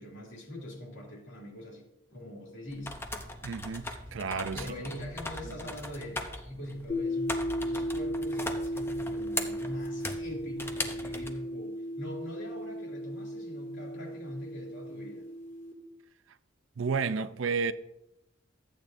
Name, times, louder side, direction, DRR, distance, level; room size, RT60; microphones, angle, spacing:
voice 1, 0.0-3.0 4.5-15.3, left 1 dB, 70° left, 2.5 m, -43 dB
sound 1, 2.7-11.3, left 2 dB, 10° left, 0.7 m, -39 dB
voice 2, 3.4-4.7 16.8-17.7, right 5 dB, 75° right, 0.5 m, -31 dB
sound 2, 6.9-15.7, equal, 40° left, 1.8 m, -35 dB
13.5 x 8.6 x 2.6 m
head